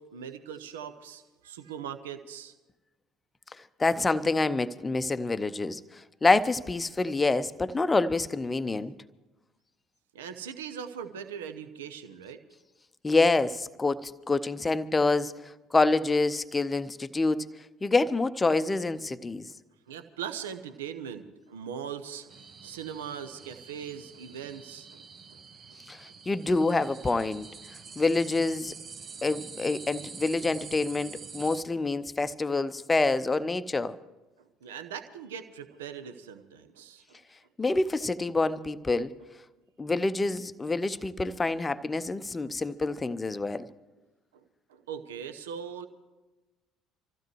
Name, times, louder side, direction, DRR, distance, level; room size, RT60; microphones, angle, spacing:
voice 1, 0.0-2.5 10.1-12.4 19.9-22.4 22.6-25.0 34.6-37.2 44.7-45.9, right 8 dB, 70° right, 0.7 m, -40 dB
voice 2, 3.8-5.8 6.2-8.9 13.0-15.3 15.7-17.5 17.8-19.5 25.9-27.5 28.0-28.7 29.2-34.0 37.6-39.1 39.8-43.6, left 3 dB, 20° left, 0.6 m, -27 dB
sound 1, 22.3-31.6, right 5 dB, 40° right, 0.9 m, -46 dB
25.5 x 15.0 x 3.2 m
figure-of-eight pair, 55°, 0 cm